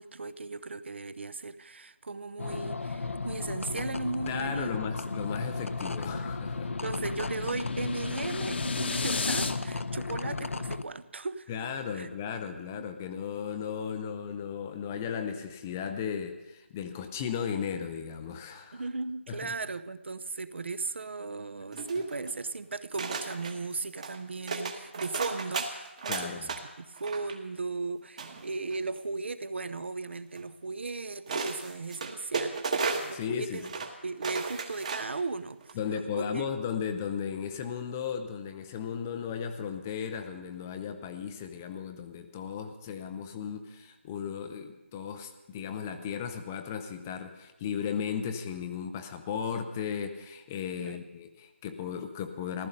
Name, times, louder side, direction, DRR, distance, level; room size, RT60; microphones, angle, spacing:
voice 1, 0.0-4.8 6.7-11.5 11.9-12.1 12.8-12.9 18.7-33.7 34.0-36.4 50.8-51.1, right 3 dB, 60° right, 15 dB, 0.7 m, -37 dB
sound 1, 2.4-10.8, left 3 dB, 90° left, 0.7 m, -35 dB
voice 2, 4.3-6.7 11.5-18.8 19.3-19.5 26.1-26.6 33.1-33.7 35.8-52.7, left 7 dB, 10° left, 7 dB, 0.4 m, -35 dB
sound 2, 5.2-9.5, left 4 dB, 55° left, 1.0 m, -35 dB
sound 3, 21.7-22.4 23.0-23.5 24.0-24.2 24.5-26.6 26.9-27.4 28.2-29.0 30.4-30.5 31.3-33.2 33.6-33.9 34.2-35.2 35.6-35.7, right 4 dB, 30° right, 1.3 m, -34 dB
15.0 x 13.5 x 5.3 m, 1.0 s
figure-of-eight pair, 170°, 7 cm